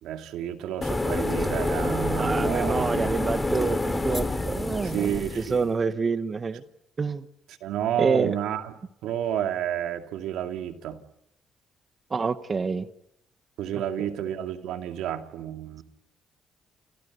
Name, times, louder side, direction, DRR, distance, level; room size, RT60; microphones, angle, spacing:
voice 1, 0.0-3.1 4.9-5.6 7.6-8.7 9.0-11.0 13.6-15.8, right 10 dB, 90° right, 7 dB, 2.5 m, -30 dB
sound 1, 0.8-5.6, left 2 dB, 15° left, 2.8 m, -27 dB
voice 2, 2.2-6.6 7.0-7.3 8.0-8.3 12.1-12.9 14.0-14.1, right 5 dB, 35° right, 11 dB, 1.3 m, -27 dB
29.0 x 17.5 x 9.7 m, 0.82 s
cardioid pair, 90°, 0 cm